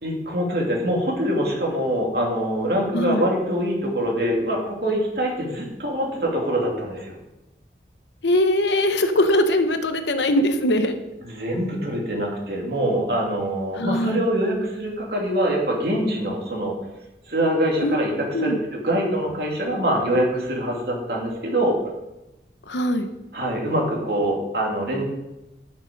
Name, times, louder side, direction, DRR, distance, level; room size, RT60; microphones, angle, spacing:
voice 1, 0.0-7.1 11.2-16.7 17.3-21.8 23.3-25.0, right 1 dB, 60° right, -1 dB, 2.8 m, -24 dB
voice 2, 2.9-3.2 8.2-11.0 13.7-14.2 17.8-18.0 18.3-18.6 22.7-23.1, left 1 dB, 90° left, 8 dB, 1.0 m, -21 dB
12.0 x 6.4 x 5.3 m, 0.96 s
head